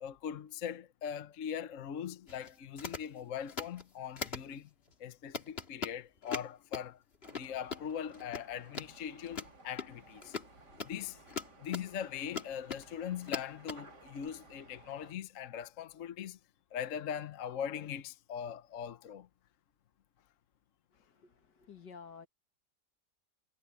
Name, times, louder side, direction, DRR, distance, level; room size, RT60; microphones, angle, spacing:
voice 1, 0.0-4.7 5.0-7.0 7.3-10.4 10.8-11.2 11.6-16.4 16.7-19.3, left 8 dB, 55° left, 1.2 m, -41 dB
sound 1, 2.3-2.5 2.8-3.1 3.5-3.8 4.2-4.5 4.9-5.0 5.3-6.9 7.2-7.8 8.1-8.4 8.7-8.9 9.2-11.9 12.3-12.9 13.2-13.8 14.2-14.3, left 5 dB, 35° left, 2.1 m, -41 dB
sound 2, 7.2-15.1, right 3 dB, 75° right, 3.7 m, -58 dB
voice 2, 20.9-22.3, left 6 dB, 85° left, 2.5 m, -52 dB
omnidirectional pair, 1.8 m